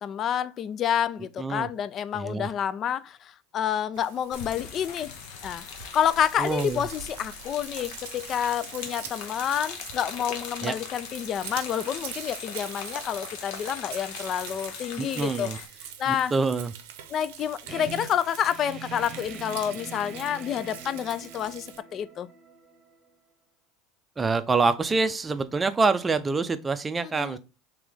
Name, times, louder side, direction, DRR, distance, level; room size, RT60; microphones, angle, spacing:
voice 1, 0.0-5.1 5.4-5.6 5.9-15.5 16.0-16.3 17.1-21.7 21.9-22.3 27.2-27.4, left 9 dB, 40° left, 0.3 m, -29 dB
voice 2, 1.4-1.7 2.1-2.5 6.4-6.8 10.6-10.7 15.0-15.6 16.1-16.7 24.2-27.4, right 4 dB, 20° right, 0.5 m, -26 dB
Frying (food), 3.9-21.8, right 9 dB, 75° right, 0.6 m, -44 dB
sound 1, 4.3-15.7, left 7 dB, 65° left, 0.7 m, -40 dB
sound 2, 17.7-23.1, right 5 dB, 40° right, 0.9 m, -43 dB
3.2 x 3.0 x 3.5 m
hypercardioid pair, 90°, 0 cm